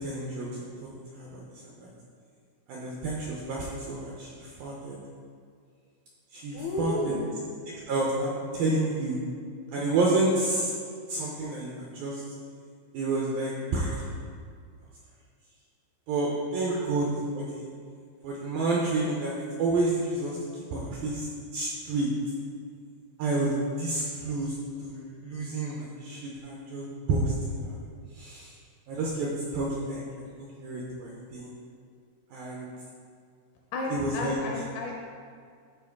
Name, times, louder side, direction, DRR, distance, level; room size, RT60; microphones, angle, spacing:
voice 1, 0.0-1.9 2.7-5.0 6.3-7.1 7.9-9.2 9.7-10.7 11.1-12.2 12.9-14.0 16.1-17.1 17.3-17.7 18.2-20.4 20.7-21.3 21.5-22.1 23.2-24.5 24.8-27.7 28.2-28.5 28.9-29.3 29.5-30.0 30.3-31.5 32.3-32.7 33.9-34.4, right 2 dB, 85° right, -4 dB, 2.1 m, -30 dB
voice 2, 6.5-7.3 16.7-16.8 33.7-35.0, left 2 dB, 80° left, -1 dB, 2.4 m, -32 dB
13.0 x 4.5 x 3.6 m, 2.1 s
omnidirectional pair, 5.2 m